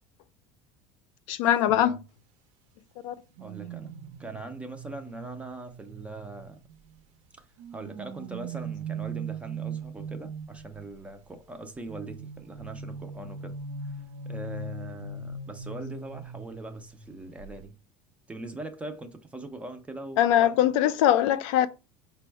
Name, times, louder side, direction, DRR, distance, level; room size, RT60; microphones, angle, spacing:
voice 1, 1.3-2.0 3.0-3.1 20.2-21.7, left 11 dB, 75° left, 0.5 m, -22 dB
voice 2, 3.4-3.9 4.2-6.6 7.7-13.5 13.8-17.8 18.3-20.7, right 2 dB, 10° right, 0.3 m, -41 dB
sound 1, 3.4-7.0 7.6-10.8 11.9-17.1 17.4-17.6, right 4 dB, 85° right, 0.6 m, -39 dB
5.1 x 2.1 x 4.4 m
cardioid pair, 175°, 16 cm